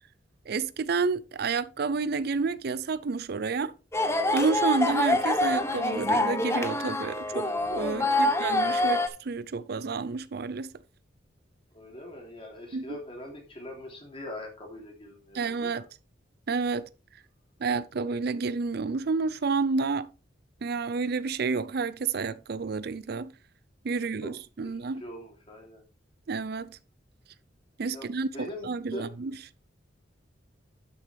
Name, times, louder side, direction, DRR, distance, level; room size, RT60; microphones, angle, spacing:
voice 1, 0.5-3.7 4.3-10.7 12.7-12.8 15.3-15.8 16.5-16.9 17.6-20.1 20.6-23.3 23.8-25.0 26.3-26.8 27.8-28.3 28.6-29.3, right 4 dB, 60° right, 0.5 m, -30 dB
sound 1, 3.9-9.1, left 2 dB, 15° left, 1.0 m, -26 dB
voice 2, 8.0-8.3 11.7-15.9 24.0-25.8 27.9-29.1, left 1 dB, 30° left, 3.2 m, -43 dB
11.5 x 7.0 x 3.4 m
head